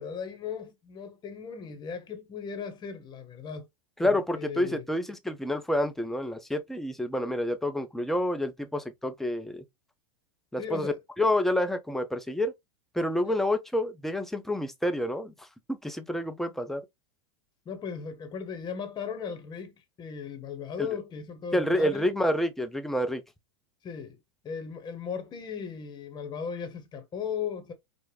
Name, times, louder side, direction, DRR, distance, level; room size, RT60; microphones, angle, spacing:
voice 1, 0.0-3.7 4.0-4.9 10.6-11.0 13.2-13.3 17.6-22.1 23.8-24.2 24.4-27.7, left 7 dB, 25° left, 1.0 m, -37 dB
voice 2, 4.0-9.6 10.5-12.5 12.9-16.8 20.8-20.9 21.5-23.2, left 1 dB, ahead, 0.6 m, -28 dB
4.7 x 2.0 x 3.3 m
hypercardioid pair, 100°, 16 cm